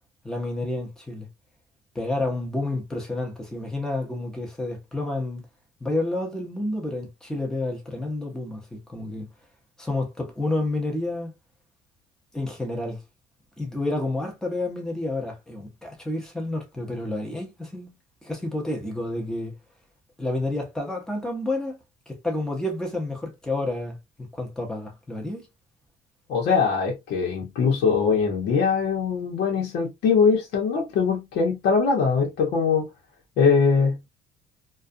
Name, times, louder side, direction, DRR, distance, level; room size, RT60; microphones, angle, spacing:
voice 1, 0.2-1.3 1.9-5.4 5.8-9.3 9.8-11.3 12.3-13.0 13.6-17.9 18.2-19.6 20.2-21.8 22.1-25.5, left 2 dB, 5° left, 0.8 m, -30 dB
voice 2, 26.3-32.9 33.4-34.1, left 5 dB, 80° left, 1.0 m, -22 dB
2.3 x 2.3 x 2.5 m
cardioid pair, 110°, 17 cm